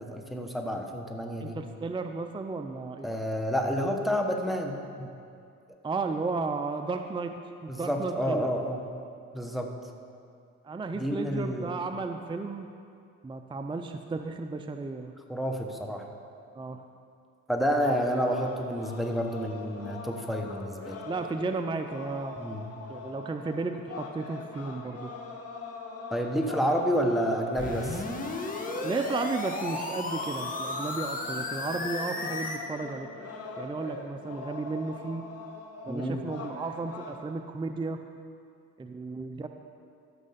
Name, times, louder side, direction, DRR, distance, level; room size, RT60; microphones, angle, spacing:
voice 1, 0.0-1.6 3.0-5.1 7.7-8.9 9.3-9.7 10.9-11.7 15.3-16.1 17.5-21.0 22.4-22.7 26.1-28.0 35.9-36.2, equal, ahead, 2 dB, 1.2 m, -29 dB
voice 2, 1.4-3.1 5.8-8.5 10.6-12.7 13.2-15.1 16.6-16.9 21.1-22.4 22.9-25.1 28.8-33.1 33.6-35.3 35.8-38.0 38.8-39.5, right 3 dB, 15° right, 6 dB, 0.5 m, -34 dB
sound 1, 17.8-37.2, left 3 dB, 55° left, 1.4 m, -42 dB
sound 2, 27.6-32.6, left 2 dB, 25° left, 1.3 m, -34 dB
13.5 x 6.3 x 5.8 m, 2.4 s
cardioid pair, 90°, 30 cm